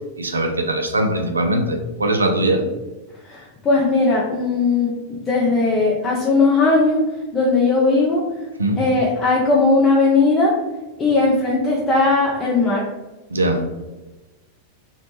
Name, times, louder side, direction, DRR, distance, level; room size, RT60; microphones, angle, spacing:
voice 1, 0.2-2.6 8.6-8.9 13.3-13.6, right 1 dB, 80° right, 4 dB, 0.3 m, -21 dB
voice 2, 3.2-7.0 7.3-8.2 8.8-10.5 11.0-12.8, left 3 dB, 25° left, -4 dB, 0.4 m, -18 dB
2.7 x 2.1 x 3.0 m, 1.1 s
figure-of-eight pair, 90°, 0 cm